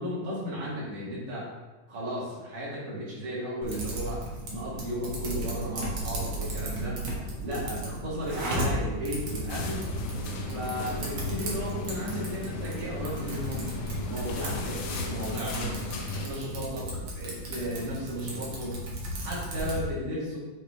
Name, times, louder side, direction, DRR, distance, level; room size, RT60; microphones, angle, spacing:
voice 1, 0.0-1.5 1.9-4.2 4.5-7.0 7.4-9.8 10.4-13.7 14.1-15.7 16.2-16.9 17.2-18.8 19.2-20.4, equal, 70° right, -7 dB, 3.7 m, -34 dB
Typing, 3.6-19.8, right 1 dB, 50° right, 1.6 m, -36 dB
Thunder, 4.6-17.0 17.9-18.0, right 1 dB, 40° left, 1.1 m, -43 dB
sound 1, 9.5-16.3, left 3 dB, 80° left, 2.5 m, -36 dB
8.4 x 4.7 x 3.1 m, 1.2 s
omnidirectional pair, 4.0 m